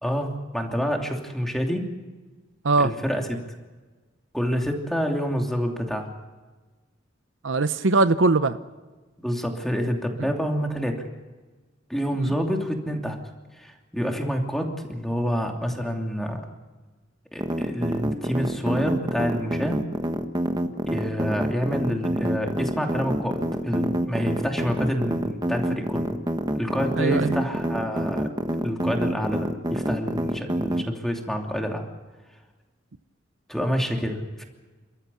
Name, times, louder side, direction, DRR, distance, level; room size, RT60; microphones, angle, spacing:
voice 1, 0.0-1.9 2.8-3.3 4.3-6.1 9.2-10.9 11.9-13.2 13.6-16.5 17.3-19.9 20.9-26.1 26.5-28.3 28.6-31.9 33.5-34.4, equal, ahead, 2 dB, 2.9 m, -27 dB
voice 2, 7.4-8.6 12.1-12.3 27.0-27.4, right 3 dB, 75° right, 12 dB, 0.8 m, -21 dB
sound 1, 17.4-30.8, right 1 dB, 20° right, 1.4 m, -26 dB
29.5 x 14.0 x 8.6 m, 1.3 s
head